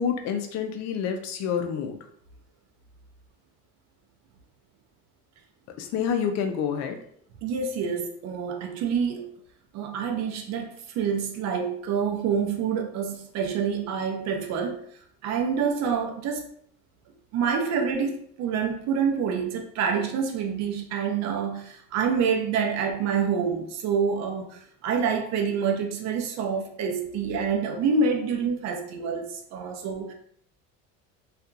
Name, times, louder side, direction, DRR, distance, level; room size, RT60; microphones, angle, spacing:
voice 1, 0.0-2.0 5.8-7.0, left 7 dB, 60° left, 5 dB, 0.5 m, -28 dB
voice 2, 7.4-9.3 9.7-14.8 15.2-16.4 17.3-30.1, right 6 dB, 60° right, 3 dB, 0.6 m, -27 dB
2.8 x 2.4 x 2.4 m, 0.64 s
cardioid pair, 125°, 31 cm